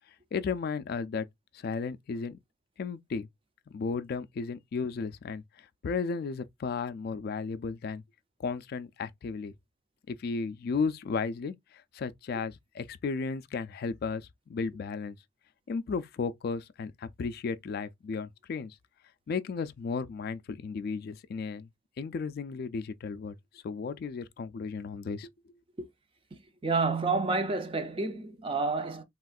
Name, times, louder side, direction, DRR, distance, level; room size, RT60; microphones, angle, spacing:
voice 1, 0.3-1.3 1.5-2.4 2.8-3.3 3.7-5.4 5.8-8.0 8.4-9.5 10.1-11.5 11.9-15.2 15.7-18.8 19.3-21.7 22.0-23.4 23.6-25.3, left 5 dB, 50° left, 0.3 m, -34 dB
voice 2, 26.6-29.0, right 3 dB, 25° right, 0.5 m, -29 dB
3.5 x 2.4 x 2.3 m
head